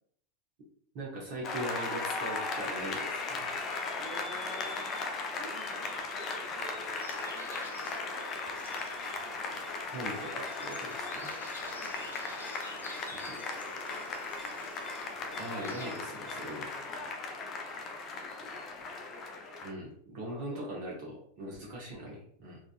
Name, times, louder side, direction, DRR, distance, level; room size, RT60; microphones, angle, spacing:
voice 1, 0.9-3.5 9.9-11.3 13.1-13.4 15.4-16.7 19.6-22.6, right 1 dB, 45° right, -4 dB, 0.8 m, -40 dB
Applause, 1.4-19.7, left 3 dB, 30° left, 0.4 m, -37 dB
voice 2, 4.0-5.0 5.3-6.0 6.3-7.3 7.6-8.9 11.6-14.8 16.9-17.1 18.1-18.7 20.2-20.7 22.0-22.2, right 1 dB, 10° right, -4 dB, 1.2 m, -52 dB
sound 1, 7.0-15.9, left 1 dB, 90° left, 0.5 m, -49 dB
sound 2, 8.4-16.7, left 1 dB, 10° left, 1.2 m, -54 dB
3.7 x 2.3 x 2.4 m, 0.66 s
figure-of-eight pair, 90°, 0 cm